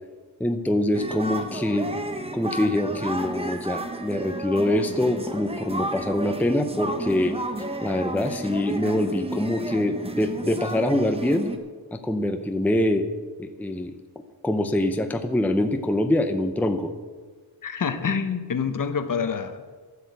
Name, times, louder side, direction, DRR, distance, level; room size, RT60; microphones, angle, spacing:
voice 1, 0.4-1.9 2.3-7.4 7.8-11.5 11.9-13.0 13.4-13.9 14.4-16.9, left 1 dB, 5° left, 6 dB, 0.7 m, -24 dB
sound 1, 0.9-11.6, right 2 dB, 15° right, 1.0 m, -32 dB
voice 2, 17.6-19.7, left 6 dB, 50° left, 9 dB, 1.1 m, -27 dB
12.5 x 8.0 x 8.1 m, 1.5 s
wide cardioid pair, 150°, 42 cm